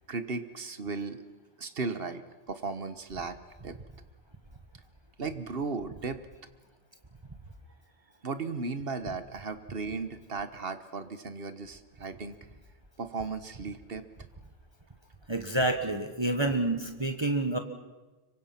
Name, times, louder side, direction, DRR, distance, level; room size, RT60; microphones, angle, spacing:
voice 1, 0.1-1.2 1.6-3.4 3.6-3.7 5.2-6.2 8.2-12.4 13.0-14.0, right 4 dB, 50° right, 11 dB, 1.5 m, -36 dB
voice 2, 15.3-17.6, right 2 dB, 20° right, 6 dB, 1.5 m, -28 dB
25.5 x 24.0 x 5.9 m, 1.2 s
omnidirectional pair, 1.3 m